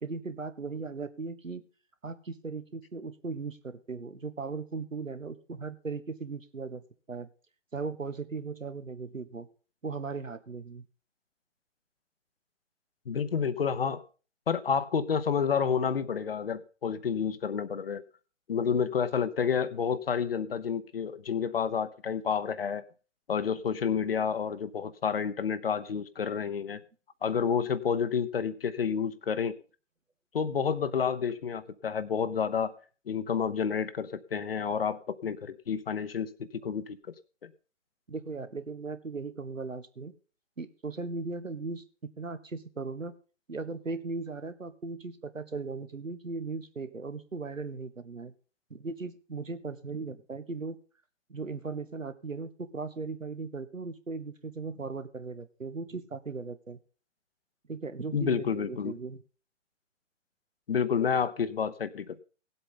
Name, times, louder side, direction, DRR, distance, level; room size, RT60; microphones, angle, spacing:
voice 1, 0.0-1.6 2.0-6.8 7.1-7.3 7.7-9.5 9.8-10.9 38.1-40.1 40.6-43.1 43.5-48.3 48.7-50.8 51.3-56.8 57.7-59.2, right 4 dB, 85° right, 12 dB, 1.2 m, -38 dB
voice 2, 13.1-14.0 14.5-18.0 18.5-22.8 23.3-26.8 27.2-29.5 30.3-32.7 33.1-36.3 36.6-37.0 37.4-37.5 58.1-58.9 60.7-62.2, left 6 dB, 50° left, 14 dB, 0.8 m, -29 dB
17.5 x 7.9 x 3.9 m, 0.37 s
figure-of-eight pair, 135°, 38 cm